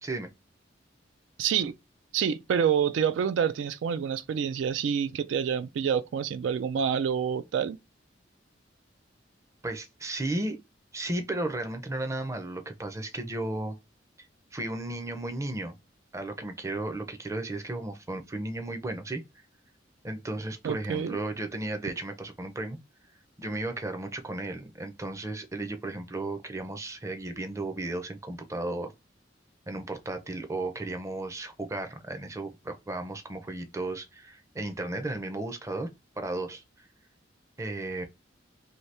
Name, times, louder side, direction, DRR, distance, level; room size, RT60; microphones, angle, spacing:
voice 1, 1.4-1.7 2.1-7.8 20.6-21.2, right 7 dB, 85° right, 0.3 m, -27 dB
voice 2, 9.6-10.6 10.9-13.8 14.5-15.8 16.1-19.2 20.0-22.8 23.4-28.9 29.7-35.9 36.2-36.9 37.6-38.0, right 2 dB, 15° right, 0.5 m, -34 dB
2.8 x 2.7 x 3.2 m
head